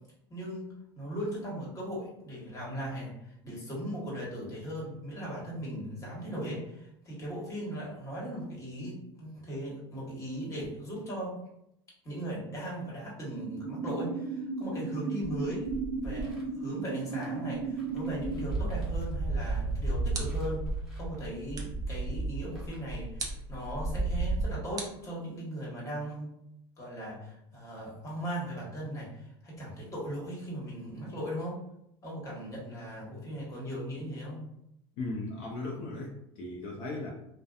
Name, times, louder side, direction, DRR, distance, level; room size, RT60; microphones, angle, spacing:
voice 1, 0.3-11.4 12.0-15.7 16.0-20.6 21.0-26.3 26.8-31.6 32.0-34.4, equal, 25° left, -4 dB, 1.3 m, -38 dB
sound 1, 13.3-18.4, right 4 dB, 80° right, 0.5 m, -35 dB
sound 2, 15.2-16.4 17.1-17.2 17.6-24.4, right 2 dB, ahead, 1.0 m, -33 dB
sound 3, 20.1-20.6 21.5-21.9 23.2-23.5 24.8-25.6, right 4 dB, 30° right, 0.6 m, -41 dB
voice 2, 35.0-37.1, left 2 dB, 65° left, -2 dB, 0.6 m, -37 dB
2.7 x 2.1 x 2.4 m, 0.80 s
supercardioid pair, 105°, 13 cm